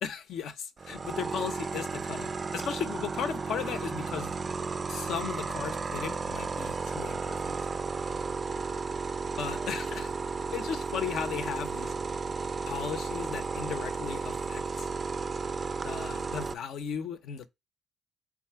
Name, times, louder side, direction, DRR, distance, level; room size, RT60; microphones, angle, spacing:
voice 1, 0.0-4.4 4.9-7.6 9.4-10.1 10.5-11.9 12.7-14.9 15.8-17.5, left 8 dB, 75° left, 0.5 m, -36 dB
sound 1, 0.8-16.5, right 4 dB, 35° right, 0.3 m, -34 dB
4.0 x 2.4 x 4.4 m
cardioid pair, 90°, 0 cm